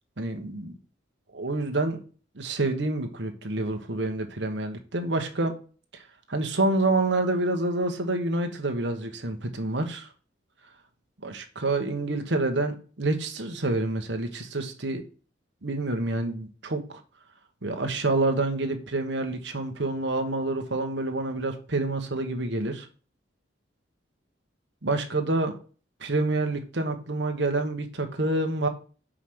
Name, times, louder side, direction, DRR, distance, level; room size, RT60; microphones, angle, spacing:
voice 1, 0.2-0.7 1.3-2.0 2.3-5.5 6.3-10.1 11.2-15.0 15.6-17.0 17.6-22.9 24.8-25.5 26.0-28.7, right 2 dB, 70° right, 1.2 m, -27 dB
5.0 x 5.0 x 6.0 m
head